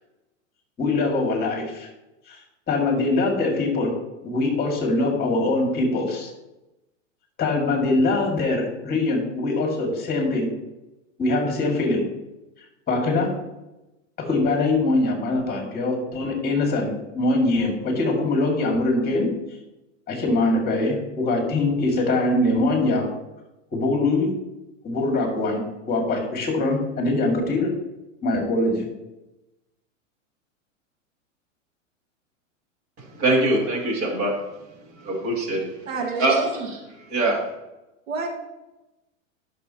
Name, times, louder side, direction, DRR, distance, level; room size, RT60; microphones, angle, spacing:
voice 1, 0.8-1.9 2.3-2.4 2.7-3.9 4.2-6.3 7.4-10.5 11.2-12.1 12.9-13.3 14.2-19.3 20.1-23.1 23.7-24.3 24.8-27.7 28.2-28.9, left 2 dB, 25° left, 1 dB, 2.2 m, -23 dB
voice 2, 33.2-34.3 35.0-35.7 36.2-36.8 37.1-37.4, right 2 dB, 35° right, -1 dB, 2.7 m, -22 dB
voice 3, 35.9-36.7 38.1-38.3, right 4 dB, 75° right, 1 dB, 1.8 m, -28 dB
11.5 x 6.3 x 2.9 m, 0.99 s
hypercardioid pair, 110°, 39 cm